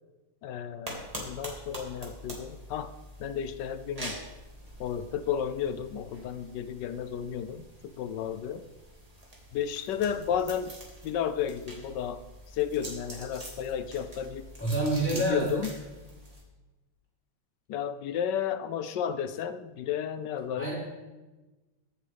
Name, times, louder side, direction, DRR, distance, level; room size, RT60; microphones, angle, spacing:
voice 1, 0.4-2.9 3.2-4.2 4.8-8.6 9.5-10.7 11.0-12.2 12.5-14.5 15.3-15.7 17.7-20.7, left 8 dB, 70° left, 12 dB, 1.1 m, -32 dB
sound 1, 0.8-16.4, right 1 dB, 20° right, 2.1 m, -45 dB
voice 2, 14.6-15.5 20.6-20.7, right 2 dB, 5° left, -8 dB, 5.0 m, -27 dB
22.5 x 7.5 x 3.4 m, 1.2 s
omnidirectional pair, 2.2 m